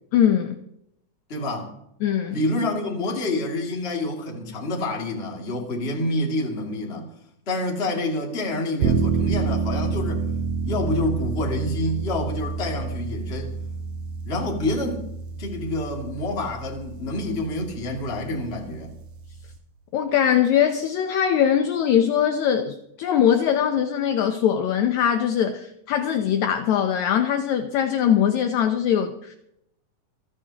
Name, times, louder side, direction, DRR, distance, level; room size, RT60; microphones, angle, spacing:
voice 1, 0.1-0.6 2.0-2.4 19.9-29.4, left 9 dB, 70° left, 2.0 m, -21 dB
voice 2, 1.3-1.7 2.3-7.1 7.5-10.3 10.6-13.6 14.2-15.0 15.3-18.9, left 1 dB, 20° left, 2.4 m, -27 dB
sound 1, 8.8-19.6, right 5 dB, 85° right, 2.9 m, -29 dB
28.0 x 9.9 x 3.0 m
omnidirectional pair, 3.7 m